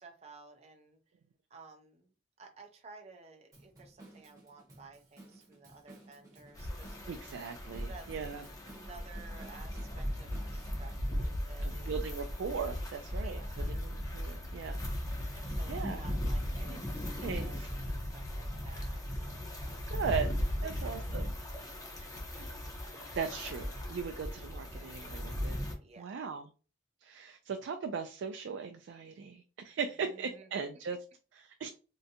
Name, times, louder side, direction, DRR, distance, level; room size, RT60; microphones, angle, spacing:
voice 1, 0.0-1.0 1.5-2.1 2.4-7.2 7.8-8.4 8.7-11.9 13.2-13.8 15.3-19.5 20.6-22.6 22.9-23.2 25.8-26.4 30.0-30.7, right 3 dB, 35° right, 3 dB, 0.5 m, -55 dB
Drum kit / Drum, 3.5-11.0, right 2 dB, 20° right, 0.9 m, -55 dB
sound 1, 6.5-25.7, equal, 20° left, 0.7 m, -37 dB
voice 2, 7.1-8.4 11.6-13.4 13.7-14.8 15.1-15.4 15.7-16.0 17.2-17.7 19.9-20.3 20.6-21.2 23.1-25.6 26.0-26.5 27.0-31.0 31.4-31.7, right 6 dB, 85° right, 5 dB, 0.3 m, -38 dB
3.7 x 2.2 x 2.7 m, 0.35 s
head